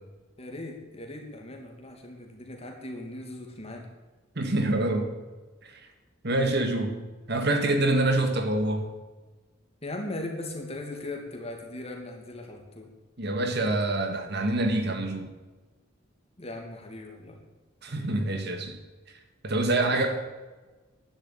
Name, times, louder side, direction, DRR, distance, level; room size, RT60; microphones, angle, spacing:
voice 1, 0.4-3.9 9.8-12.9 16.4-17.4 17.9-18.1 19.7-20.0, left 1 dB, 30° left, 2 dB, 2.6 m, -39 dB
voice 2, 4.4-5.1 5.6-5.8 6.2-7.0 7.3-8.9 13.2-15.3 17.8-18.8 19.4-20.1, right 2 dB, 55° right, 6 dB, 1.9 m, -26 dB
11.5 x 10.0 x 9.2 m, 1.2 s
head